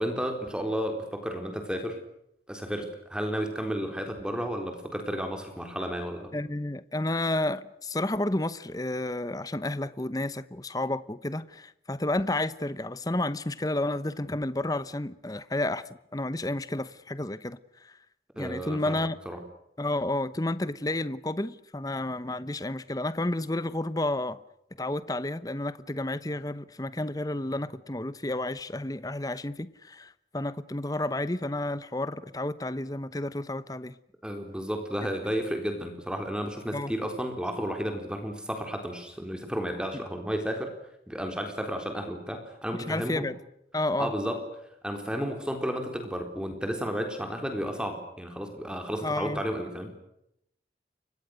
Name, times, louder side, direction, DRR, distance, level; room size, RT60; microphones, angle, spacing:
voice 1, 0.0-2.0 2.5-6.4 18.4-19.4 34.2-40.7 41.1-43.3 44.0-44.4 44.8-49.9, equal, 5° right, 3.9 m, -32 dB
voice 2, 6.3-18.0 18.4-19.2 19.8-24.4 24.8-34.0 36.7-36.9 42.9-43.3 43.7-44.1 49.0-49.4, left 1 dB, 20° left, 0.9 m, -31 dB
30.0 x 24.5 x 6.5 m
head